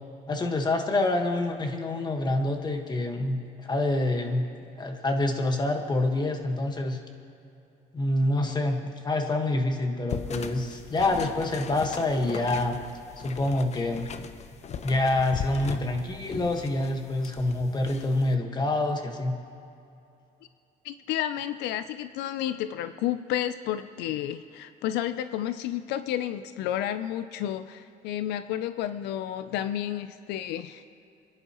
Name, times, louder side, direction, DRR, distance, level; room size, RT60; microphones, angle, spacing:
voice 1, 0.3-4.5 4.8-7.0 7.9-12.8 13.2-14.1 14.8-19.4, left 2 dB, 25° left, 4 dB, 1.4 m, -27 dB
sound 1, 10.1-18.3, left 7 dB, 40° left, 0.7 m, -39 dB
voice 2, 20.8-30.8, left 11 dB, 90° left, 12 dB, 0.5 m, -31 dB
28.5 x 10.5 x 3.0 m, 2.7 s
cardioid pair, 110°, 17 cm